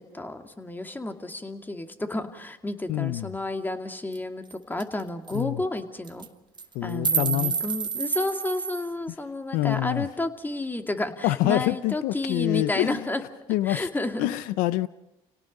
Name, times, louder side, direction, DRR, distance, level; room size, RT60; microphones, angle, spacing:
voice 1, 0.0-6.3 6.8-13.2 13.6-14.3, left 2 dB, 15° left, 6 dB, 2.4 m, -31 dB
voice 2, 2.9-3.3 5.3-5.6 6.7-7.5 9.5-10.0 11.2-13.0 13.5-13.9 14.2-14.9, left 16 dB, 75° left, 16 dB, 0.6 m, -26 dB
sound 1, 4.1-4.2 4.5-4.6 4.8-5.0 5.3-5.4 6.0-6.3 6.6-8.9, right 6 dB, 30° right, 1.5 m, -28 dB
30.0 x 18.0 x 5.4 m, 0.92 s
supercardioid pair, 80°, 14 cm